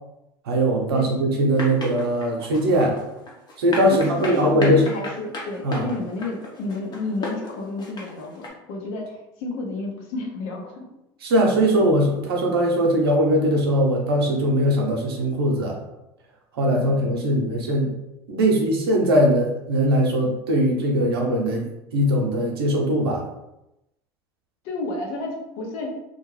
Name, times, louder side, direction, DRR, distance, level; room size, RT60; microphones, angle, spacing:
voice 1, 0.5-3.0 3.6-4.8 5.6-5.9 11.2-15.8 16.5-17.9 18.3-23.2, equal, 85° right, 0 dB, 0.7 m, -20 dB
sound 1, 1.5-8.5, left 2 dB, 35° left, 0.9 m, -34 dB
voice 2, 3.9-10.9 16.7-17.3 24.6-25.9, left 2 dB, 65° left, 1 dB, 0.8 m, -31 dB
2.5 x 2.2 x 3.2 m, 0.90 s
hypercardioid pair, 80°, 12 cm